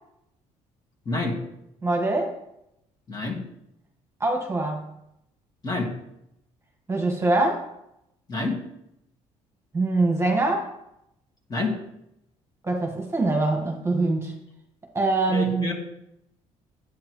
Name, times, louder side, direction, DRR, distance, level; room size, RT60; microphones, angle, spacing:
voice 1, 1.1-1.4 3.1-3.4 5.6-5.9 8.3-8.6 11.5-11.7 15.3-15.7, left 3 dB, 30° left, 0 dB, 2.2 m, -27 dB
voice 2, 1.8-2.3 4.2-4.9 6.9-7.6 9.7-10.7 12.6-14.3 14.9-15.7, right 2 dB, 20° right, 2 dB, 1.6 m, -23 dB
9.6 x 8.7 x 3.2 m, 0.81 s
cardioid pair, 95°, 14 cm